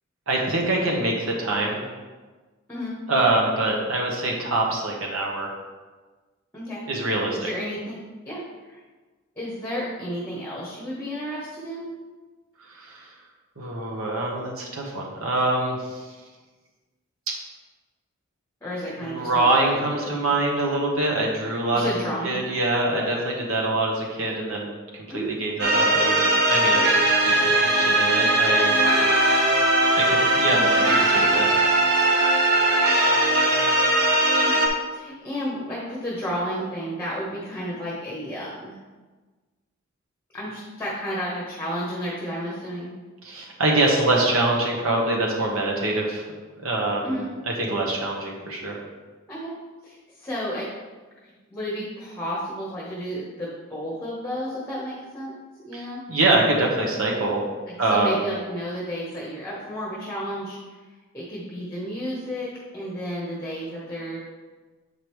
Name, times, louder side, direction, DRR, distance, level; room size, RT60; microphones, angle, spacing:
voice 1, 0.3-1.8 3.1-5.5 6.9-7.5 12.7-13.1 13.6-16.1 17.3-17.4 19.0-21.9 22.2-27.0 27.3-28.8 30.0-30.6 31.1-31.5 43.2-46.2 46.6-47.2 47.5-48.8 55.7-57.4 57.8-58.2, right 2 dB, 75° right, -1 dB, 1.2 m, -24 dB
voice 2, 2.7-3.0 6.5-6.8 7.3-8.0 8.2-8.8 9.4-11.9 18.6-20.2 21.7-22.4 25.1-25.3 30.5-30.8 34.4-38.8 40.3-42.9 47.0-47.3 49.3-49.5 49.8-50.7 51.5-55.3 55.6-56.0 57.7-60.6 61.1-64.2, equal, 10° left, -5 dB, 1.1 m, -32 dB
sound 1, 25.6-34.7, right 1 dB, 55° right, 1.0 m, -19 dB
7.8 x 5.1 x 3.1 m, 1.3 s
head